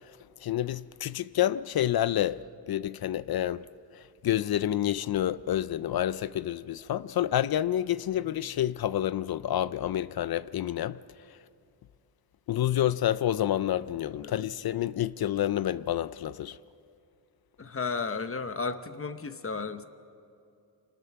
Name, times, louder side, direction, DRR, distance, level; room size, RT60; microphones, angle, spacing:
voice 1, 0.4-3.7 3.9-11.0 12.5-16.6, left 12 dB, 55° left, 0.5 m, -28 dB
voice 2, 17.6-19.8, left 4 dB, 30° left, 0.9 m, -34 dB
25.5 x 20.0 x 5.9 m
wide cardioid pair, 115°, 44 cm